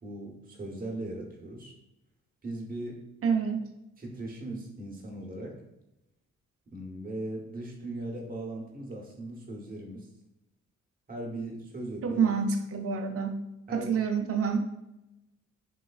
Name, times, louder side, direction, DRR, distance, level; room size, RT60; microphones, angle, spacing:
voice 1, 0.0-1.7 2.4-3.0 4.0-5.6 6.7-10.1 11.1-12.2 13.7-13.9, right 1 dB, 30° right, 0 dB, 0.9 m, -38 dB
voice 2, 3.2-3.7 12.0-13.4 13.7-14.6, right 6 dB, 50° right, 4 dB, 0.6 m, -27 dB
3.2 x 3.1 x 2.3 m, 0.89 s
cardioid pair, 70°, 29 cm